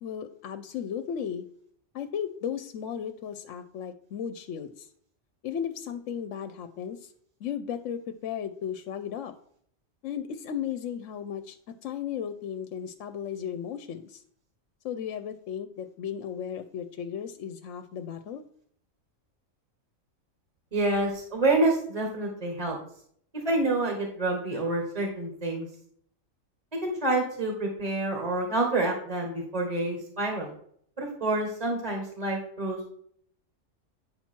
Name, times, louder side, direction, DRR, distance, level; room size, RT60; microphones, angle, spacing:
voice 1, 0.0-1.5 1.9-4.9 5.4-7.1 7.4-9.3 10.0-14.2 14.8-18.4, left 8 dB, 75° left, 9 dB, 0.9 m, -35 dB
voice 2, 20.7-22.8 23.3-25.7 26.8-30.5 31.0-32.8, right 2 dB, 30° right, 1 dB, 1.5 m, -28 dB
9.3 x 5.9 x 4.4 m, 0.63 s
omnidirectional pair, 1.4 m